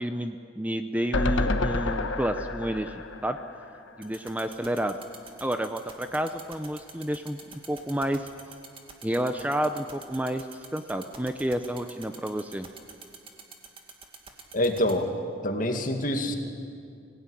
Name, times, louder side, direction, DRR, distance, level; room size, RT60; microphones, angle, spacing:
voice 1, 0.0-3.4 4.0-5.0 5.4-8.3 9.0-12.7, right 1 dB, 10° right, 8 dB, 0.6 m, -30 dB
sound 1, 1.1-4.4 4.7-4.8 5.1-5.2, left 2 dB, 85° left, 1.3 m, -29 dB
sound 2, 4.0-14.9, right 6 dB, 30° right, 2.1 m, -44 dB
voice 2, 14.5-15.1 15.4-16.3, left 1 dB, 45° left, 5 dB, 2.2 m, -26 dB
24.5 x 17.0 x 9.9 m, 2.4 s
head